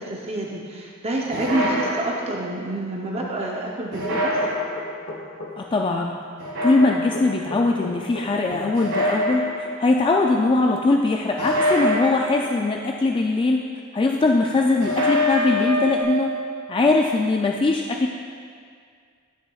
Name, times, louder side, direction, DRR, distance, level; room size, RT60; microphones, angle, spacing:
voice 1, 0.0-4.4, right 1 dB, 30° right, -2 dB, 0.7 m, -28 dB
sound 1, 1.3-2.5 3.9-5.1 6.4-7.4 8.7-9.9 11.4-12.7 14.8-16.0, left 1 dB, 65° right, 1.9 m, -25 dB
sound 2, 4.1-5.5 7.1-8.7, left 2 dB, 55° left, 1.0 m, -35 dB
voice 2, 5.6-6.2 6.6-9.5 9.8-13.6 13.9-16.3 16.7-18.1, left 3 dB, 25° left, 1 dB, 0.3 m, -21 dB
11.5 x 6.4 x 2.3 m, 2.1 s
head